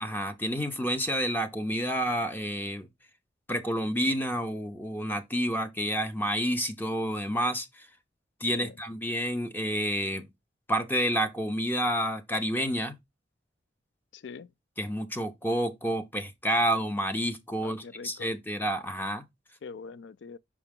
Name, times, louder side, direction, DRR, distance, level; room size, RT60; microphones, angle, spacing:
voice 1, 0.0-2.9 3.5-7.9 8.4-10.3 10.7-13.0 14.8-19.2, equal, 10° left, 0.8 m, -29 dB
voice 2, 14.1-14.5 17.6-18.3 19.6-20.4, left 5 dB, 65° left, 0.4 m, -43 dB
5.6 x 4.9 x 3.6 m
head